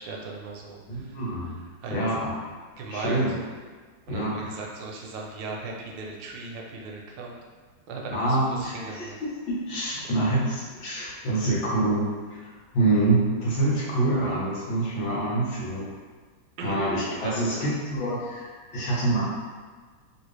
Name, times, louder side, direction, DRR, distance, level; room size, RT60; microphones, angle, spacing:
voice 1, 0.0-1.2 1.8-2.0 2.8-3.2 4.1-7.4 7.9-9.2 16.6-16.8 17.2-17.4, right 3 dB, 75° right, -1 dB, 1.2 m, -37 dB
voice 2, 0.9-1.5 1.9-2.3 2.9-3.3 4.1-4.5 8.1-12.0 12.7-15.9 16.6-19.2, right 2 dB, 80° left, -7 dB, 1.8 m, -26 dB
3.8 x 2.7 x 3.2 m, 1.5 s
omnidirectional pair, 2.1 m